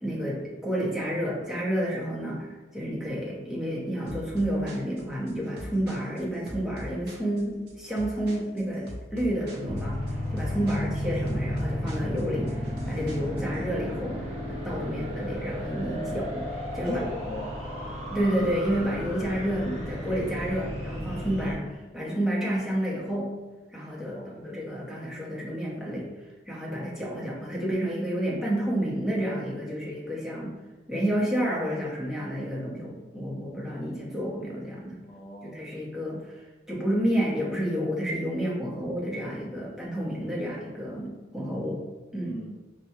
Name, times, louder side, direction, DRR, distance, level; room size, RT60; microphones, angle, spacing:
voice 1, 0.0-17.0 18.1-23.3 23.7-26.1 26.5-30.5 30.9-35.0 35.4-41.8 42.1-42.4, equal, 5° right, -6 dB, 0.9 m, -30 dB
sound 1, 4.1-13.6, equal, 65° right, 0.9 m, -42 dB
sound 2, 9.7-21.6, equal, 35° right, 0.9 m, -33 dB
voice 2, 10.6-10.9 16.8-17.6 20.5-20.7 24.1-24.5 35.0-35.6 42.2-42.5, left 1 dB, 25° left, -4 dB, 0.3 m, -39 dB
5.8 x 2.3 x 2.7 m, 1.2 s
head